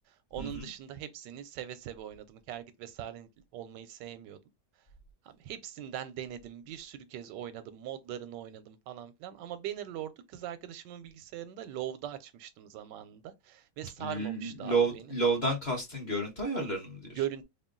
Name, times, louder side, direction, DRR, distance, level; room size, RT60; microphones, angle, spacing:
voice 1, 0.3-4.4 5.2-15.1 17.1-17.4, right 11 dB, 90° right, 1.3 m, -41 dB
voice 2, 14.0-17.2, right 3 dB, 30° left, 1.0 m, -31 dB
3.7 x 2.2 x 3.7 m
omnidirectional pair, 1.8 m